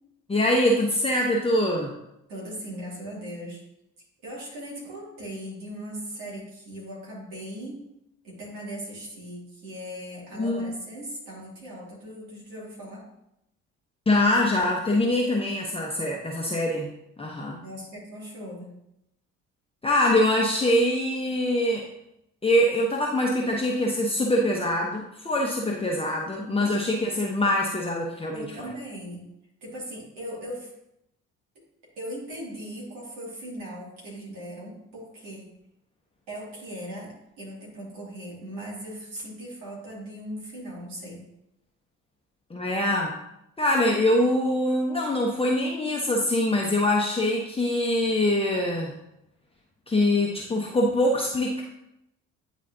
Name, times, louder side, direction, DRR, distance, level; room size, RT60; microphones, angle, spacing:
voice 1, 0.3-1.9 10.4-10.7 14.1-16.9 17.2-17.6 19.8-21.9 22.4-28.7 42.5-43.2 43.6-48.9 49.9-51.6, left 1 dB, 15° left, -1 dB, 0.9 m, -24 dB
voice 2, 2.3-3.6 4.2-7.9 8.2-13.0 17.4-18.7 26.4-26.7 28.3-29.2 29.6-30.7 32.0-35.5 36.3-41.2, equal, 65° right, -5 dB, 2.5 m, -39 dB
9.4 x 4.1 x 2.7 m, 0.83 s
figure-of-eight pair, 45°, 39 cm